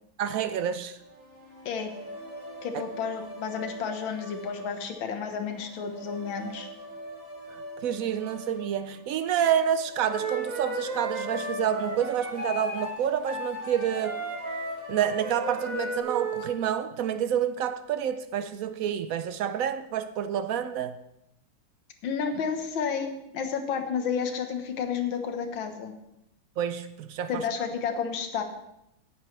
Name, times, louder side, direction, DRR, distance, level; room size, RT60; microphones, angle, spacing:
voice 1, 0.2-1.0 2.7-2.8 7.5-14.2 14.9-21.0 26.6-27.4, right 9 dB, 85° right, 0.7 m, -28 dB
sound 1, 1.0-16.0, right 1 dB, 50° right, 5.7 m, -44 dB
voice 2, 2.6-6.7 22.0-25.9 27.3-28.4, left 6 dB, 80° left, 2.0 m, -31 dB
Wind instrument woodwind instrument, 10.0-16.5, right 1 dB, 20° right, 4.1 m, -34 dB
17.5 x 11.0 x 3.3 m
omnidirectional pair, 2.1 m